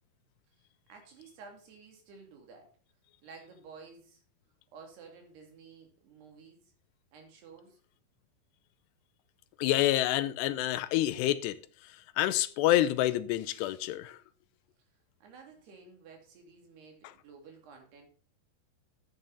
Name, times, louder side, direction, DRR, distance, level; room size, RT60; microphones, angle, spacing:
voice 1, 0.9-2.7 3.2-4.2 4.7-6.7 7.1-7.8 15.2-18.1, right 5 dB, 70° right, 4.6 m, -52 dB
voice 2, 9.6-11.6 12.2-14.2, left 14 dB, 90° left, 2.8 m, -27 dB
12.5 x 8.8 x 4.0 m
omnidirectional pair, 4.8 m